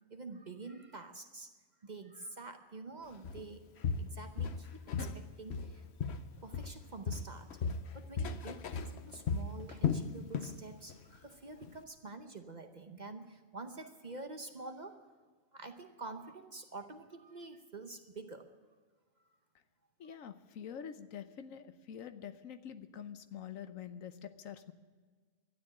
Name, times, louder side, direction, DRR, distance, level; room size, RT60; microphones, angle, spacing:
voice 1, 0.1-1.5 1.8-3.6 4.0-5.8 6.4-7.7 7.9-15.1 15.5-18.5, right 3 dB, 40° right, 6 dB, 0.8 m, -47 dB
Walk footsteps, 3.2-3.5 3.8-5.2 5.5-6.8 7.1-10.6 10.9-11.2 11.6-11.7, left 6 dB, 60° left, 1.0 m, -36 dB
voice 2, 20.0-24.7, left 8 dB, 80° left, 10 dB, 1.2 m, -46 dB
12.5 x 9.9 x 9.8 m, 1.5 s
omnidirectional pair, 1.4 m